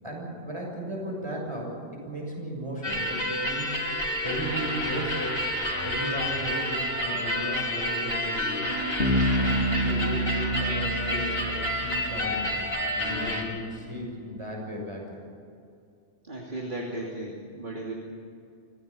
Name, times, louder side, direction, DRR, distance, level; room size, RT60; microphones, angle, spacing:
voice 1, 0.0-5.4 5.8-8.8 9.4-15.2, equal, 25° right, -1 dB, 6.8 m, -35 dB
sound 1, 2.8-13.4, equal, 55° left, 3.9 m, -29 dB
Bass guitar, 9.0-12.7, right 1 dB, 75° left, 2.8 m, -28 dB
voice 2, 16.2-17.9, right 1 dB, 45° right, -2 dB, 3.0 m, -35 dB
26.0 x 16.5 x 8.6 m, 2.4 s
omnidirectional pair, 1.2 m